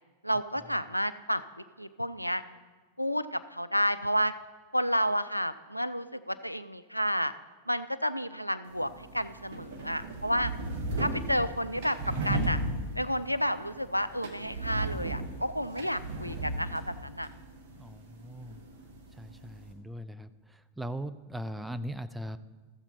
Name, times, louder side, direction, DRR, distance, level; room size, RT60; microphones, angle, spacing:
voice 1, 0.2-1.4 1.8-2.4 3.0-4.3 4.7-7.3 7.7-10.5 11.0-12.6 13.0-17.3, equal, 90° left, 13 dB, 0.3 m, -31 dB
sound 1, 8.6-19.7, right 1 dB, 50° right, 1.8 m, -36 dB
voice 2, 17.8-18.6 19.2-22.4, equal, 5° right, 11 dB, 0.4 m, -39 dB
14.0 x 7.2 x 4.0 m, 1.3 s
figure-of-eight pair, 90°, 0 cm